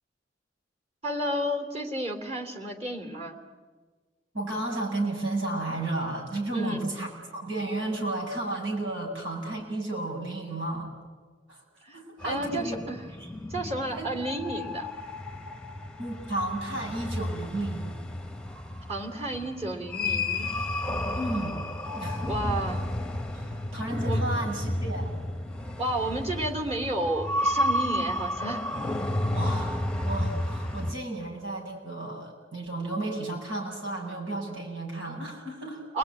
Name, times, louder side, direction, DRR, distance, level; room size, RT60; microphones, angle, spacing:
voice 1, 1.0-3.4 6.5-6.8 11.8-12.0 12.2-13.0 13.5-14.9 18.9-20.5 22.3-22.9 24.0-24.2 25.8-28.6 35.9-36.0, right 1 dB, 35° right, 5 dB, 3.0 m, -31 dB
voice 2, 4.3-10.9 11.5-11.6 11.9-12.8 13.2-13.3 13.9-14.1 16.0-18.0 21.1-21.6 21.9-22.3 23.3-25.2 29.3-35.8, right 2 dB, 90° right, 0 dB, 7.9 m, -33 dB
sound 1, 12.2-31.0, left 1 dB, 5° left, 0.9 m, -32 dB
30.0 x 20.5 x 9.7 m, 1.4 s
head